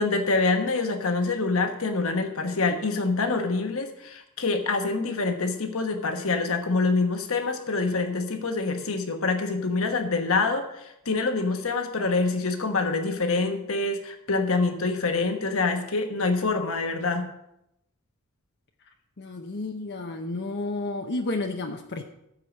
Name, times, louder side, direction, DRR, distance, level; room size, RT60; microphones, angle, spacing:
voice 1, 0.0-17.3, left 3 dB, 70° left, 5 dB, 1.3 m, -26 dB
voice 2, 19.2-22.0, left 2 dB, 50° left, 4 dB, 0.8 m, -31 dB
14.0 x 4.9 x 7.3 m, 0.83 s
head